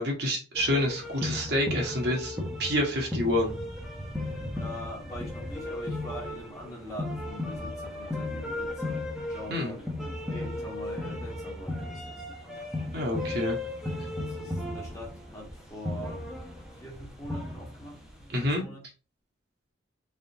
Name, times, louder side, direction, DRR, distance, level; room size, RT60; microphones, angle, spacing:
voice 1, 0.0-3.6 9.5-9.7 12.9-13.6 18.3-18.6, left 1 dB, 50° right, 1.2 m, -28 dB
sound 1, 0.6-18.3, left 1 dB, 5° right, 0.8 m, -36 dB
voice 2, 4.6-9.0 9.3-9.9 10.3-12.2 13.8-16.2 16.8-18.0 18.4-18.8, left 1 dB, 15° left, 1.2 m, -43 dB
3.6 x 3.5 x 2.7 m
head